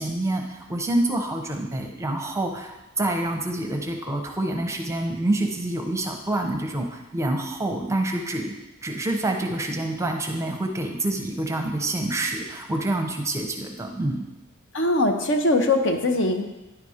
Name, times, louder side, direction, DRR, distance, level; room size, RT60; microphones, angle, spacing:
voice 1, 0.0-8.5 8.8-14.3, right 1 dB, 15° right, 2 dB, 0.7 m, -27 dB
voice 2, 14.7-16.4, left 2 dB, 60° left, 5 dB, 0.8 m, -21 dB
9.9 x 4.1 x 4.9 m, 0.98 s
head